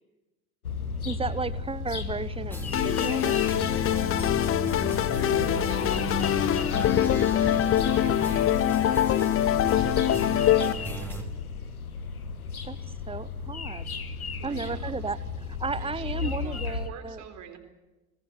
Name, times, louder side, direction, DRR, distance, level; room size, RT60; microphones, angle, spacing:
sound 1, 0.6-16.9, left 5 dB, 80° left, 1.5 m, -35 dB
voice 1, 1.0-3.5 12.6-12.8 13.1-13.9 14.4-17.2, right 4 dB, 15° right, 18 dB, 0.9 m, -34 dB
sound 2, 2.5-11.2, left 3 dB, 5° left, 4.2 m, -34 dB
sound 3, 2.7-10.7, left 11 dB, 30° left, 1.1 m, -24 dB
voice 2, 5.1-11.3 14.4-15.2 15.8-17.6, right 8 dB, 40° right, 7 dB, 4.1 m, -44 dB
23.5 x 19.5 x 8.7 m, 1.1 s
figure-of-eight pair, 70°, 43 cm